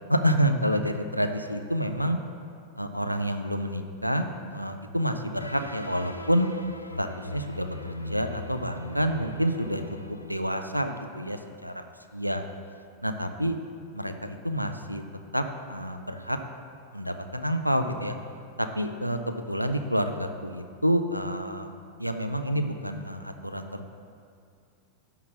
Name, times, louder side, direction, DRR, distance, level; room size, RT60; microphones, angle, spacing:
voice 1, 0.1-2.2 2.8-6.5 7.0-7.8 8.1-9.8 10.1-11.8 12.1-12.4 13.0-13.6 13.9-15.0 15.3-16.4 16.9-18.2 18.6-21.7 22.0-23.9, equal, 90° right, 7 dB, 0.5 m, -28 dB
sound 1, 5.4-11.2, left 1 dB, 85° left, 0.5 m, -40 dB
11.5 x 3.9 x 7.2 m, 2.3 s
figure-of-eight pair, 90°, 0 cm